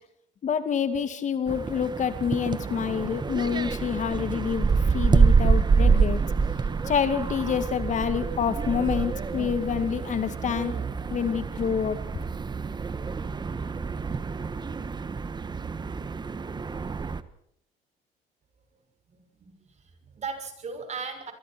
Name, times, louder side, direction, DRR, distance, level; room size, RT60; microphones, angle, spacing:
voice 1, 0.4-6.2 6.9-10.7 11.1-12.0, left 7 dB, 45° left, 10 dB, 2.2 m, -27 dB
sound 1, 1.5-17.2, right 5 dB, 25° right, 1.3 m, -27 dB
voice 2, 19.1-21.3, right 5 dB, 40° right, 6 dB, 6.2 m, -38 dB
27.0 x 23.0 x 4.5 m, 0.72 s
cardioid pair, 110°, 17 cm